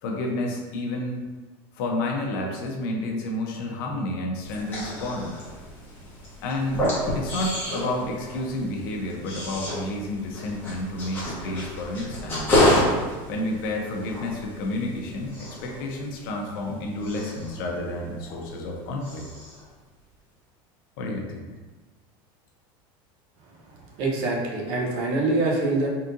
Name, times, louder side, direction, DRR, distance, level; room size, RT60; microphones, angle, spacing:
voice 1, 0.0-1.2 1.8-5.3 6.4-6.8 7.1-12.5 13.3-19.2 21.0-21.5, left 1 dB, 65° left, 0 dB, 0.8 m, -30 dB
sound 1, 4.4-18.7 19.0-19.6, left 1 dB, 15° left, 1.3 m, -29 dB
voice 2, 24.0-25.9, right 2 dB, 45° right, -2 dB, 0.9 m, -24 dB
4.2 x 3.6 x 2.6 m, 1.3 s
cardioid pair, 175°, 12 cm